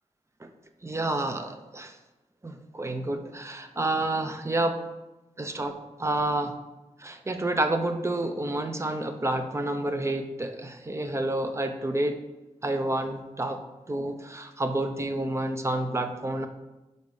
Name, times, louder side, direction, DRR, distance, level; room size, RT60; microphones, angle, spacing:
voice 1, 0.8-1.9 2.4-4.8 5.4-6.6 7.0-12.2 12.6-13.6 13.9-16.5, right 1 dB, 20° right, 7 dB, 0.5 m, -29 dB
4.6 x 4.1 x 5.3 m, 1.0 s
wide cardioid pair, 110°, 13 cm